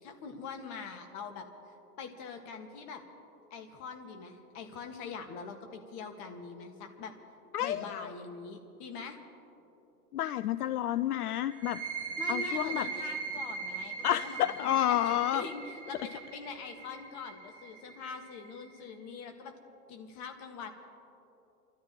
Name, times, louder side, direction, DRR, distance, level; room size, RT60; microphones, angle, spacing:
voice 1, 0.0-1.5 2.0-3.0 3.5-7.1 7.6-9.2 12.2-19.5 19.9-20.7, left 5 dB, 35° left, 5 dB, 1.8 m, -43 dB
voice 2, 7.5-8.1 10.1-11.8 12.3-12.9 14.0-15.4, left 12 dB, 70° left, 13 dB, 0.6 m, -30 dB
sound 1, 11.5-18.9, right 5 dB, 15° right, 2.9 m, -40 dB
29.5 x 13.5 x 3.1 m, 2.9 s
hypercardioid pair, 105°, 47 cm